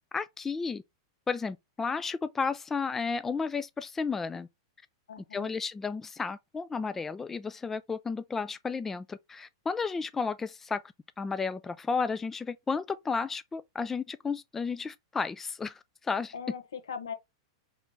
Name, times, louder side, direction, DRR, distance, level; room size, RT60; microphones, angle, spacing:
voice 1, 0.1-0.8 1.3-4.5 5.3-10.8 11.2-16.3, left 5 dB, 15° left, 0.3 m, -33 dB
voice 2, 5.1-5.5 16.3-17.1, left 6 dB, 85° left, 1.2 m, -39 dB
4.8 x 3.3 x 3.0 m
hypercardioid pair, 115°, 2 cm